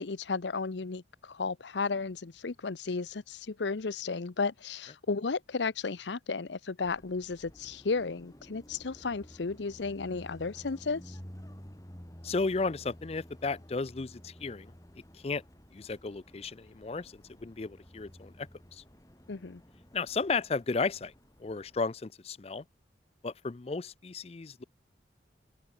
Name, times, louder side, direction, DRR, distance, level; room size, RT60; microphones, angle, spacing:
voice 1, 0.0-11.2 19.3-19.6, left 4 dB, 75° left, 0.7 m, -34 dB
Car passing by, 6.8-21.8, equal, 20° left, 3.0 m, -52 dB
voice 2, 12.2-14.7 15.1-15.4 15.7-18.8 19.9-21.1 21.4-22.6 23.2-24.6, left 4 dB, 35° left, 0.4 m, -34 dB
open air
head